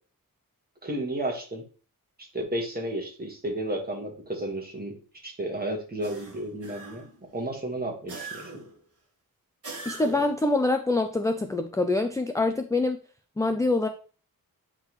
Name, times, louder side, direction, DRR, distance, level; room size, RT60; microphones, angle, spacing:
voice 1, 0.8-1.6 2.2-5.0 5.2-7.0 7.3-8.5, right 1 dB, 25° right, 1 dB, 1.6 m, -32 dB
sound 1, 6.0-7.2 8.1-8.8 9.6-10.5, right 3 dB, 40° right, 1.5 m, -41 dB
voice 2, 9.9-13.0 13.4-13.9, left 2 dB, 10° left, 7 dB, 0.4 m, -25 dB
8.9 x 3.8 x 3.1 m, 0.39 s
wide cardioid pair, 135°, 35 cm